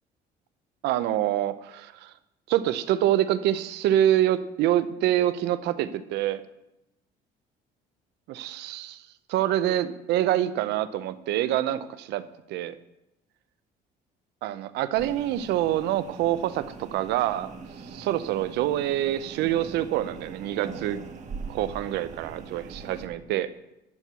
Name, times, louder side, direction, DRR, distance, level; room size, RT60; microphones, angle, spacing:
voice 1, 0.8-2.1 2.5-6.4 8.3-9.0 9.3-12.2 12.5-12.7 14.4-17.5 17.9-21.0 21.5-23.5, right 12 dB, 85° right, 14 dB, 0.7 m, -26 dB
sound 1, 15.0-23.1, right 4 dB, 45° right, 1.5 m, -42 dB
13.0 x 4.6 x 8.1 m, 0.88 s
cardioid pair, 110°, 17 cm